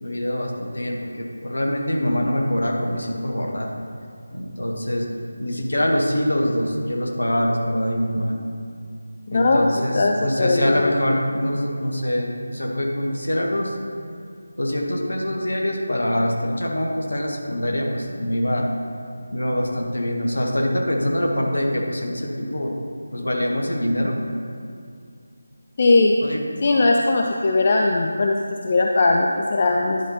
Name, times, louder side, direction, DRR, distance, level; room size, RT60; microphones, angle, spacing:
voice 1, 0.0-3.7 4.3-5.1 5.4-8.4 9.3-13.7 14.6-18.7 19.3-22.7 23.1-24.2 26.2-26.4, equal, 65° left, 0 dB, 1.1 m, -24 dB
voice 2, 9.3-9.6 9.9-10.9 25.8-26.1 26.6-30.0, left 3 dB, 35° left, 1 dB, 0.3 m, -19 dB
10.5 x 5.4 x 2.9 m, 2.3 s
figure-of-eight pair, 160°, 0 cm